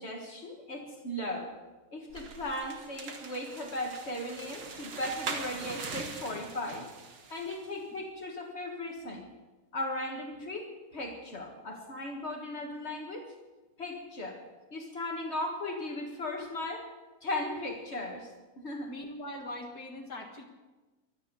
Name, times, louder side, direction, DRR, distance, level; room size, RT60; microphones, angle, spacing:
voice 1, 0.0-1.5 1.9-6.9 7.3-9.2 9.7-13.3 13.8-14.4 14.7-16.9 17.2-18.9, left 1 dB, 85° left, 1 dB, 0.6 m, -37 dB
sound 1, 2.1-7.7, right 4 dB, 75° right, 0.9 m, -42 dB
voice 2, 18.9-20.4, left 1 dB, 55° left, 1 dB, 1.0 m, -41 dB
24.0 x 10.0 x 5.4 m, 1.2 s
omnidirectional pair, 4.1 m